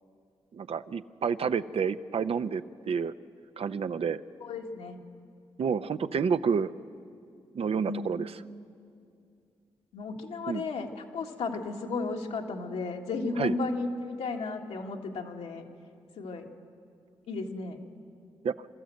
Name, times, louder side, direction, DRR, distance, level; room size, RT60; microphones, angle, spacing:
voice 1, 0.5-3.1 3.6-4.2 5.6-6.7 7.5-8.3 10.5-10.6 13.4-13.5 18.4-18.5, right 6 dB, 65° right, 12 dB, 0.7 m, -29 dB
voice 2, 4.4-5.0 7.9-8.0 9.9-15.6 16.2-16.5 17.3-17.8, left 3 dB, 85° left, 1 dB, 1.9 m, -34 dB
27.0 x 13.5 x 7.8 m, 2.4 s
supercardioid pair, 45°, 11 cm